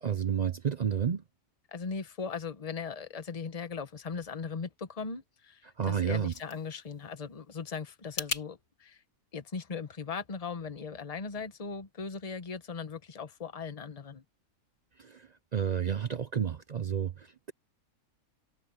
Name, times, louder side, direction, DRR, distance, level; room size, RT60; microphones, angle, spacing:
voice 1, 0.0-1.2 5.8-6.3 15.0-17.5, right 8 dB, 65° right, 0.4 m, -31 dB
voice 2, 1.7-9.0 9.3-14.2, left 5 dB, 25° left, 1.1 m, -39 dB
sound 1, 5.8-8.5, left 4 dB, 55° left, 2.3 m, -41 dB
omnidirectional pair, 1.5 m